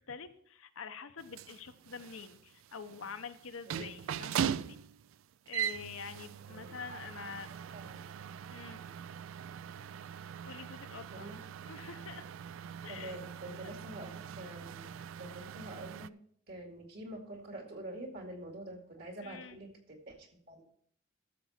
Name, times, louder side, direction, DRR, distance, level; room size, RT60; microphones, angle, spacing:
voice 1, 0.0-4.8 5.5-7.5 8.5-8.8 10.4-11.3 11.6-12.3 12.8-13.2 13.6-13.7 19.2-19.6, left 6 dB, 80° left, 9 dB, 0.8 m, -46 dB
sound 1, 1.2-16.1, right 9 dB, 75° right, 0.3 m, -41 dB
voice 2, 3.7-4.0 6.5-7.0 7.7-8.1 8.7-8.9 11.1-11.4 12.8-14.9 15.2-16.1 16.5-20.6, right 1 dB, 55° right, 2 dB, 2.3 m, -46 dB
13.0 x 7.0 x 4.3 m, 0.64 s
head